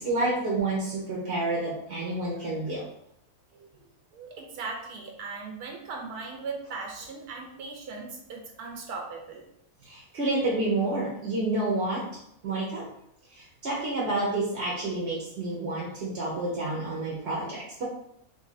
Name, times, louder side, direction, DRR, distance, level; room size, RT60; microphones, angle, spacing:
voice 1, 0.0-2.8 9.8-12.0 12.4-12.8 13.3-17.8, right 2 dB, 50° right, -5 dB, 0.9 m, -29 dB
voice 2, 4.1-9.4, right 4 dB, 85° right, 1 dB, 1.1 m, -38 dB
2.7 x 2.6 x 4.0 m, 0.76 s
omnidirectional pair, 1.6 m